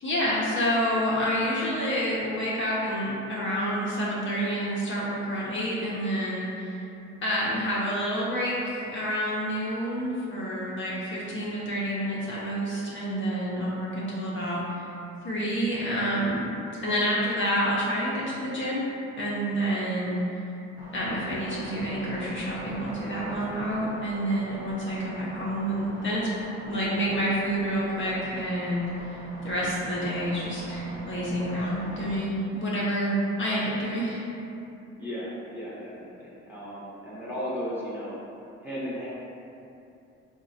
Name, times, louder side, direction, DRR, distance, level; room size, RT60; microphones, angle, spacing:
voice 1, 0.0-6.8 7.2-14.9 15.2-16.5 16.8-18.8 19.2-20.4 20.9-26.3 26.7-34.2, equal, 40° left, -6 dB, 0.6 m, -28 dB
sound 1, 20.8-32.2, right 1 dB, 50° right, 0.8 m, -43 dB
voice 2, 35.0-38.1 38.6-39.1, equal, 5° right, -9 dB, 0.9 m, -35 dB
3.7 x 2.1 x 2.6 m, 2.8 s
cardioid pair, 90°, 30 cm